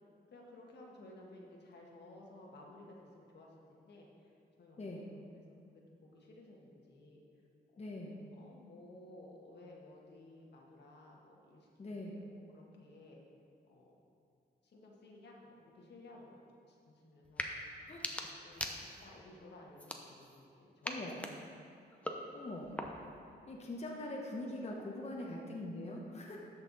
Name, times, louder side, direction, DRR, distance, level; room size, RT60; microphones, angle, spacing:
voice 1, 0.3-4.3 4.6-5.4 5.7-7.2 7.7-8.0 8.3-13.2 13.7-14.0 14.6-16.4 16.7-17.5 18.4-18.7 19.0-21.1 24.0-24.1 25.1-25.4, left 1 dB, 75° left, -2 dB, 1.6 m, -56 dB
voice 2, 7.8-8.2 11.8-12.2 17.8-18.1 20.8-21.2 22.3-22.7 23.2-26.4, left 1 dB, 35° left, -2 dB, 1.1 m, -43 dB
sound 1, 17.2-17.5 17.9-19.2 19.8-20.4 20.8-23.2, left 1 dB, 5° left, 0.8 m, -43 dB
13.0 x 5.7 x 4.1 m, 2.5 s
cardioid pair, 100°, 18 cm